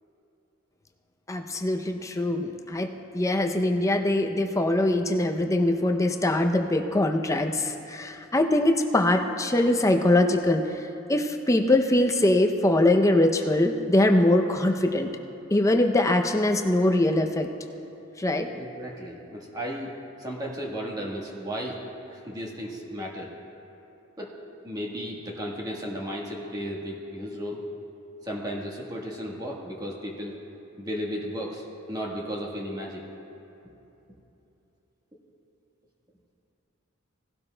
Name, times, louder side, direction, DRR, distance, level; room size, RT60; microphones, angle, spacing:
voice 1, 1.3-2.9 3.1-15.1 15.5-17.5 18.2-18.5, left 1 dB, 15° left, 4 dB, 0.5 m, -23 dB
voice 2, 18.5-21.8 22.1-23.3 24.2-24.3 24.6-27.6 28.2-30.4 30.8-33.0, equal, 20° right, -3 dB, 1.3 m, -34 dB
18.0 x 12.0 x 2.2 m, 2.9 s
head